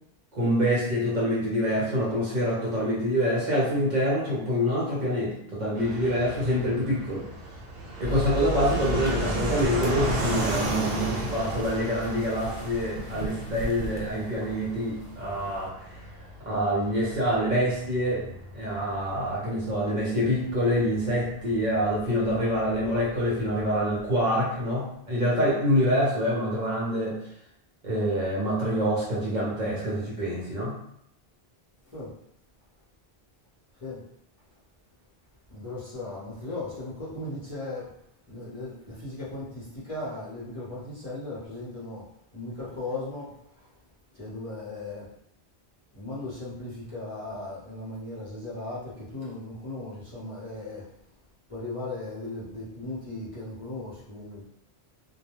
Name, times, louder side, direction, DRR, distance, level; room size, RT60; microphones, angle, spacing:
voice 1, 0.3-7.2 8.0-16.0 16.4-18.2 18.5-27.2 27.8-30.7, equal, 50° right, -6 dB, 0.8 m, -26 dB
Fixed-wing aircraft airplane, 5.8-24.1, right 2 dB, 70° right, 0.8 m, -36 dB
sound 1, 8.0-15.7, right 1 dB, 70° left, 0.8 m, -37 dB
voice 2, 35.5-37.9 38.3-42.1 42.3-43.7 44.1-45.1 45.9-50.9 51.5-54.4, left 2 dB, 35° left, -9 dB, 0.8 m, -37 dB
2.3 x 2.1 x 2.9 m, 0.75 s
omnidirectional pair, 1.1 m